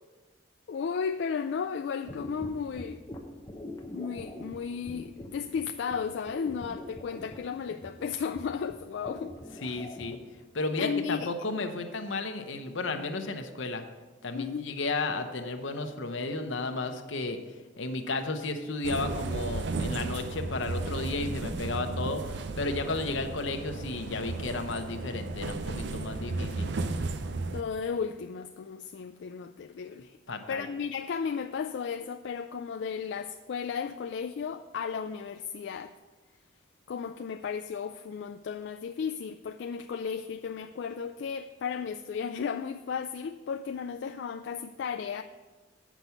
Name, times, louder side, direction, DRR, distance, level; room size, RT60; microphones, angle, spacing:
voice 1, 0.7-3.0 3.6-3.7 3.9-9.3 9.6-9.9 10.8-11.3 14.3-14.7 27.5-30.2 30.5-35.9 36.9-45.2, left 6 dB, 65° left, 8 dB, 0.3 m, -34 dB
sound 1, 2.0-10.2, left 1 dB, 20° left, 0.8 m, -44 dB
voice 2, 9.6-10.2 10.5-13.8 14.2-17.4 17.8-26.8 30.3-30.7, left 3 dB, 80° left, 7 dB, 0.8 m, -33 dB
sound 2, 18.8-27.6, right 3 dB, 60° right, 0.5 m, -34 dB
8.1 x 6.0 x 5.7 m, 1.3 s
head